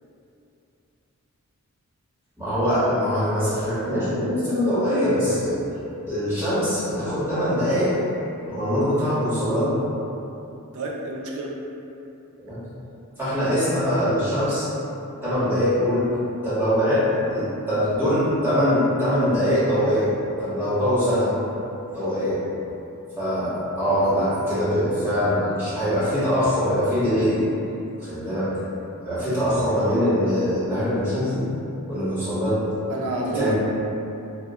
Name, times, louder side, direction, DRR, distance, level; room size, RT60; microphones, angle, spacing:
voice 1, 2.4-5.6 6.1-7.9 8.4-9.8 12.4-12.6 13.2-14.7 15.2-16.1 16.4-20.1 20.4-21.3 21.9-22.4 23.2-27.4 28.0-28.5 29.0-31.4 31.9-32.6 33.3-33.6, equal, 10° right, -14 dB, 1.0 m, -22 dB
voice 2, 10.7-11.5 32.9-33.6, right 2 dB, 75° right, -2 dB, 0.4 m, -29 dB
2.2 x 2.0 x 3.5 m, 2.8 s
head